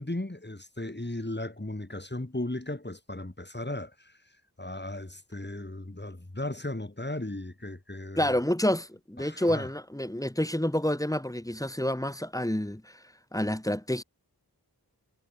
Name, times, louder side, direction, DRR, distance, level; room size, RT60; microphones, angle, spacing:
voice 1, 0.0-4.1 4.6-8.4 9.2-9.7, left 1 dB, 25° left, 6.5 m, -36 dB
voice 2, 8.2-13.0 13.3-14.0, left 1 dB, 10° left, 2.3 m, -28 dB
wide cardioid pair, 60°, 38 cm